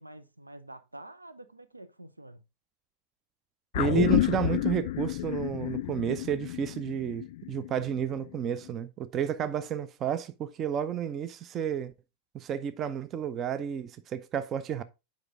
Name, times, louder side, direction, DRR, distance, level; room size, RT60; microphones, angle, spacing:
voice 1, 0.0-2.4, right 1 dB, 85° right, 0.8 m, -48 dB
sound 1, 3.7-8.3 8.7-8.8, left 15 dB, 55° left, 0.3 m, -30 dB
voice 2, 3.7-11.9 12.3-14.8, right 9 dB, 30° right, 0.6 m, -31 dB
7.9 x 5.2 x 3.6 m
figure-of-eight pair, 90°, 0 cm